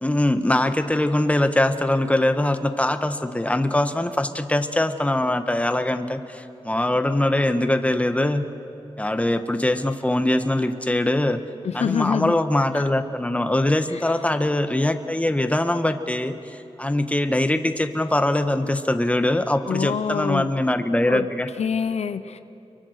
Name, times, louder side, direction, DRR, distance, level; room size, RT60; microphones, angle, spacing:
voice 1, 0.0-8.4 9.0-11.4 11.7-21.5, left 1 dB, 10° left, 8 dB, 1.4 m, -22 dB
voice 2, 11.6-12.3 19.7-20.5 21.1-21.3 21.6-22.4, left 7 dB, 85° left, 11 dB, 0.8 m, -25 dB
29.5 x 23.5 x 6.6 m, 2.8 s
wide cardioid pair, 75°, 11 cm